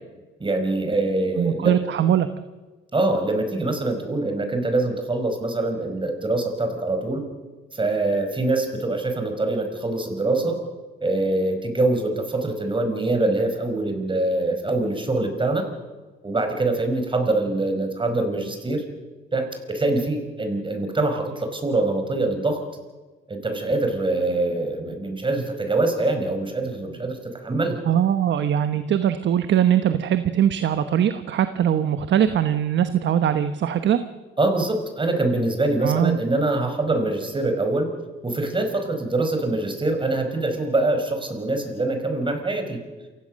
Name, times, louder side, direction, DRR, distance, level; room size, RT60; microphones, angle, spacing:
voice 1, 0.4-1.7 2.9-7.2 7.7-10.6 11.0-15.7 16.2-18.8 19.3-22.6 23.3-27.8 34.4-37.9 38.2-42.8, right 2 dB, 25° right, 5 dB, 5.2 m, -24 dB
voice 2, 1.4-2.3 27.8-34.0 35.8-36.2, right 10 dB, 65° right, 10 dB, 1.2 m, -21 dB
28.0 x 16.5 x 6.5 m, 1.3 s
cardioid pair, 90°, 20 cm